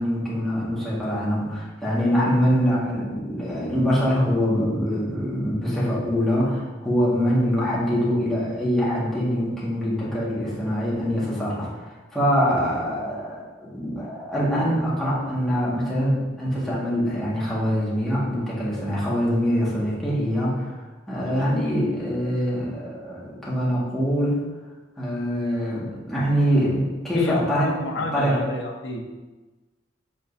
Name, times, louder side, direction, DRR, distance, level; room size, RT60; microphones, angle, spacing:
voice 1, 0.0-20.7 21.1-24.4 25.0-27.7 28.1-28.4, equal, ahead, -9 dB, 1.8 m, -24 dB
voice 2, 27.1-29.0, left 1 dB, 80° left, 1 dB, 1.0 m, -30 dB
7.4 x 5.2 x 2.8 m, 1.2 s
head